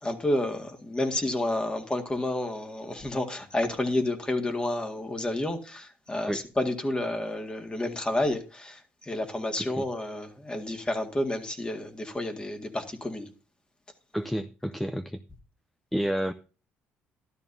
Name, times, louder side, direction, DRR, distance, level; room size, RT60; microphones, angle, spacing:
voice 1, 0.0-13.3, left 1 dB, 20° left, 2.0 m, -30 dB
voice 2, 14.1-15.2 15.9-16.3, equal, 5° left, 0.5 m, -30 dB
12.5 x 12.5 x 2.7 m
supercardioid pair, 75°, 5 cm